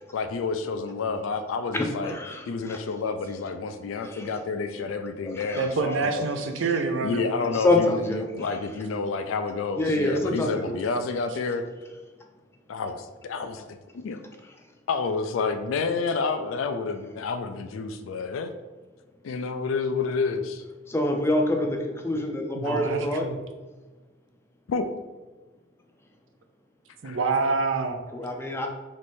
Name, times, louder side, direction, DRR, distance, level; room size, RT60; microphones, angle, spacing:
voice 1, 0.1-2.2 2.5-6.3 7.0-11.6 12.7-14.2 14.9-18.5 19.2-20.6 24.7-24.9 27.0-27.2, left 4 dB, 85° left, 8 dB, 0.3 m, -29 dB
voice 2, 1.7-2.8 4.0-4.3 5.2-5.7 7.5-8.5 9.8-10.8 20.9-23.2 28.1-28.7, left 1 dB, 15° left, 2 dB, 0.4 m, -26 dB
voice 3, 5.6-7.5 22.6-23.4 27.0-28.0, right 4 dB, 75° right, 5 dB, 0.5 m, -27 dB
3.2 x 3.1 x 4.2 m, 1.3 s
head